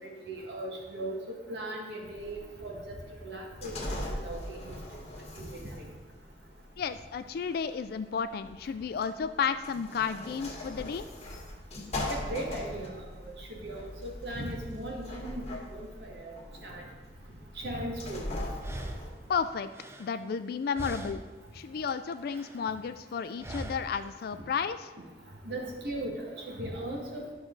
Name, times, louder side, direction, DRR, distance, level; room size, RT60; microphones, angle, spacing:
voice 1, 0.0-4.7 5.4-5.7 12.1-15.4 15.7-16.3 16.6-16.8 17.6-18.4 25.4-27.3, right 1 dB, 65° right, -1 dB, 1.8 m, -38 dB
sound 1, 2.2-19.1, left 1 dB, 40° left, 1.8 m, -40 dB
voice 2, 6.8-11.1 19.3-19.7 20.0-21.3 21.5-24.9, left 6 dB, 60° left, 11 dB, 0.3 m, -32 dB
sound 2, 18.0-18.1 18.6-20.5 20.8-21.5 21.8-22.7 23.4-24.1, right 1 dB, 15° right, 0.5 m, -42 dB
11.0 x 6.1 x 3.9 m, 1.3 s
head